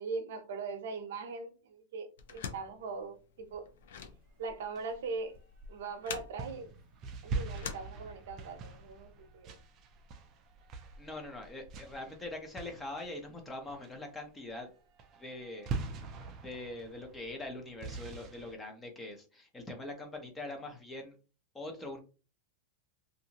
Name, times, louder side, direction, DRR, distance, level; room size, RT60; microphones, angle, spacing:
voice 1, 0.0-3.7 4.4-5.3 5.7-6.7 7.2-9.6, right 4 dB, 75° right, 0.7 m, -40 dB
sound 1, 2.2-8.5, left 7 dB, 75° left, 0.5 m, -46 dB
sound 2, 4.3-5.9 6.4-13.4 13.7-14.1 14.5-14.7 15.0-18.5, right 3 dB, 30° right, 0.4 m, -43 dB
voice 2, 11.0-14.7 15.1-15.7 16.4-21.2 21.5-22.0, left 2 dB, 10° left, 0.6 m, -43 dB
2.6 x 2.5 x 2.8 m
supercardioid pair, 160°, 0 cm